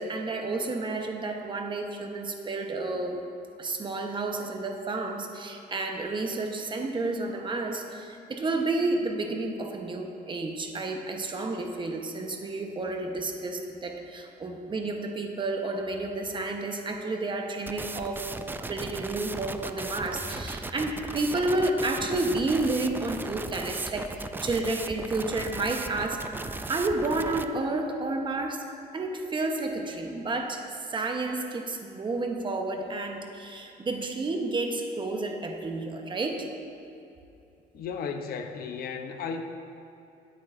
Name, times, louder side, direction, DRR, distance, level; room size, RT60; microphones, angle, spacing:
voice 1, 0.0-3.2 3.6-26.3 26.7-28.6 28.9-36.5, right 2 dB, 30° right, 3 dB, 1.0 m, -31 dB
sound 1, 17.7-27.4, right 3 dB, 10° right, 0.4 m, -37 dB
voice 2, 37.7-39.4, left 6 dB, 65° left, 6 dB, 0.8 m, -34 dB
17.0 x 8.6 x 2.6 m, 2.7 s
cardioid pair, 110°, 17 cm